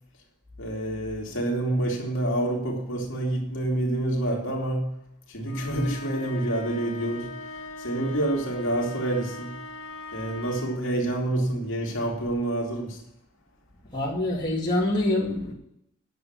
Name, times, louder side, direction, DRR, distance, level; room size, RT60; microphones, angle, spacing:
voice 1, 0.6-5.0 5.3-7.5 7.8-9.6 10.1-13.0, right 1 dB, 60° left, 2.8 m, -28 dB
sound 1, 5.4-10.9, left 2 dB, 80° left, 1.7 m, -40 dB
voice 2, 13.9-15.5, left 1 dB, 20° left, 2.6 m, -25 dB
10.5 x 6.8 x 7.3 m
head